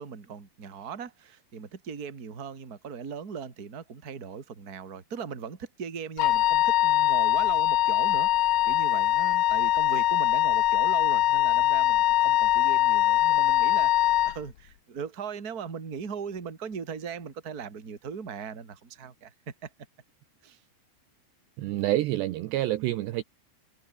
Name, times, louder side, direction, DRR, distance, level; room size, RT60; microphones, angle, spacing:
voice 1, 0.0-19.7 20.4-20.6, right 6 dB, 25° right, 2.1 m, -39 dB
Wind instrument woodwind instrument, 6.2-14.4, left 14 dB, 75° left, 2.2 m, -22 dB
voice 2, 21.6-23.2, right 15 dB, 75° right, 2.7 m, -27 dB
omnidirectional pair, 5.8 m